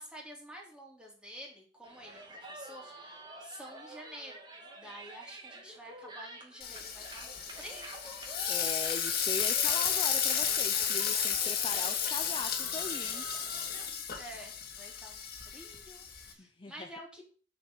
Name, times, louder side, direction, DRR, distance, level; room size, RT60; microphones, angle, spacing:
voice 1, 0.0-4.4 4.8-8.3 14.2-17.2, equal, 5° right, -1 dB, 3.5 m, -49 dB
sound 1, 1.8-13.9, right 2 dB, 25° right, 2.5 m, -49 dB
Frying (food), 6.6-16.3, left 7 dB, 55° left, 2.2 m, -32 dB
voice 2, 8.5-13.3 16.4-16.9, left 3 dB, 30° left, 7 dB, 0.6 m, -40 dB
7.4 x 7.0 x 7.1 m, 0.40 s
head